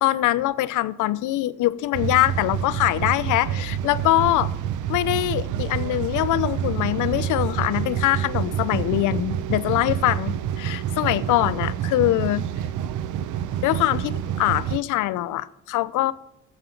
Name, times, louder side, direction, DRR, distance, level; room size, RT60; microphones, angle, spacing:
voice 1, 0.0-4.5 4.9-12.4 13.6-16.1, left 15 dB, 90° left, 0.7 m, -23 dB
sound 1, 1.9-14.8, right 9 dB, 80° right, 0.7 m, -28 dB
13.0 x 8.1 x 5.9 m
cardioid pair, 90°, 30 cm